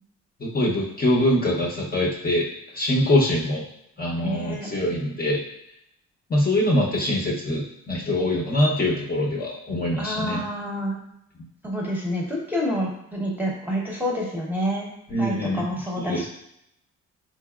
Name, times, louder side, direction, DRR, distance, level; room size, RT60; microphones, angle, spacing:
voice 1, 0.4-2.5 2.7-3.6 4.0-5.4 6.3-10.5 11.4-11.5 15.1-15.6 16.0-16.3, left 1 dB, 30° left, -3 dB, 0.8 m, -23 dB
voice 2, 4.2-4.7 10.0-11.0 11.6-14.9 15.2-16.3, equal, 5° right, -3 dB, 0.9 m, -28 dB
4.1 x 3.0 x 2.4 m, 0.77 s
cardioid pair, 90°, 30 cm